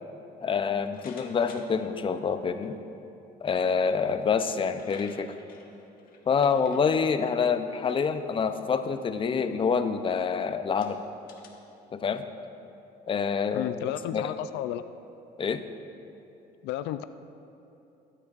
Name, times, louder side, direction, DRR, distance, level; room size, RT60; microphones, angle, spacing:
voice 1, 0.4-2.8 3.4-5.3 6.3-11.0 11.9-12.2 13.1-13.7 14.1-14.3 15.4-15.6, left 6 dB, 30° left, 9 dB, 0.6 m, -27 dB
sound 1, 0.9-1.9 2.6-2.7 4.2-4.3 4.5-6.8 7.8-8.1 8.5-8.8 9.5-9.6 10.2-10.3 10.8-11.5, left 5 dB, 60° left, 1.3 m, -53 dB
voice 2, 13.5-14.8 16.6-17.0, left 12 dB, 85° left, 12 dB, 0.4 m, -32 dB
18.0 x 8.7 x 2.5 m, 2.9 s
cardioid pair, 110°, 17 cm